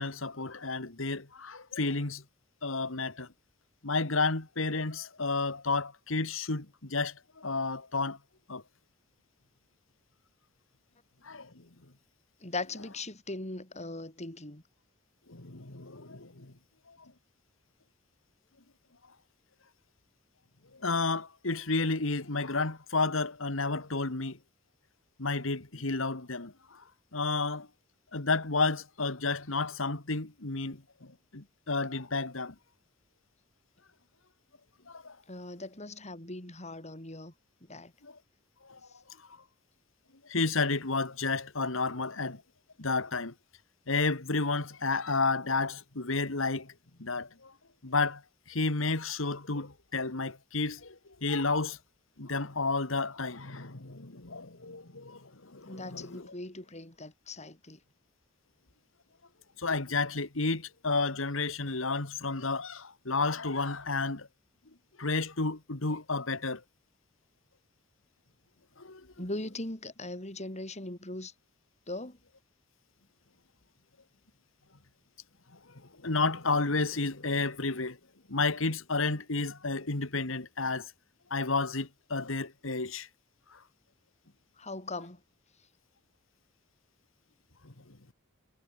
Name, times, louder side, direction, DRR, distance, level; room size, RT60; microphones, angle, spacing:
voice 1, 0.0-2.2 2.6-3.3 3.8-8.2 8.5-8.6 11.2-11.6 15.3-16.5 16.9-17.0 20.7-24.4 25.2-26.8 27.1-27.7 28.1-32.6 34.9-35.2 38.0-38.2 38.7-38.8 40.2-42.4 42.8-43.3 43.9-46.7 47.0-47.5 47.8-48.2 48.5-51.8 52.2-56.3 59.6-64.3 65.0-66.6 68.8-69.1 75.7-78.0 78.3-80.9 81.3-83.1 83.5-83.6 87.6-88.0, left 3 dB, 70° left, 2.1 m, -31 dB
voice 2, 12.4-14.6 35.3-37.3 37.6-37.9 55.7-57.8 69.2-71.3 71.9-72.2 84.6-85.2, left 2 dB, 35° left, 5.7 m, -40 dB
head